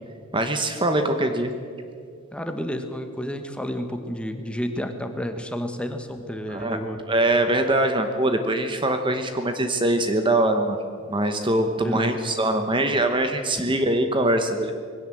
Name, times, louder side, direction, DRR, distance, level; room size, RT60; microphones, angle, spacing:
voice 1, 0.3-1.5 6.5-6.8 7.1-10.8 11.1-14.7, right 1 dB, 20° right, 6 dB, 1.0 m, -23 dB
voice 2, 2.3-7.0 11.8-12.1 13.7-13.8, equal, 5° left, 6 dB, 1.3 m, -31 dB
21.0 x 17.0 x 7.8 m, 2.3 s
head